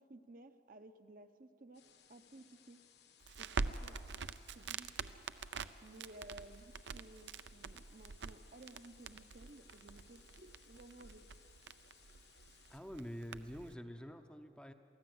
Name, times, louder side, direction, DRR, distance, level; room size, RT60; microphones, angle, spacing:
voice 1, 0.0-1.8 2.1-2.8 3.4-4.0 4.5-5.1 5.8-11.2, right 2 dB, 50° right, 9 dB, 0.8 m, -56 dB
sound 1, 1.7-12.8, left 8 dB, 65° left, 1.3 m, -66 dB
Crackle, 3.2-13.7, right 4 dB, 75° right, 0.6 m, -45 dB
voice 2, 12.7-14.7, equal, 5° left, 7 dB, 0.6 m, -47 dB
23.5 x 15.5 x 7.9 m, 2.7 s
head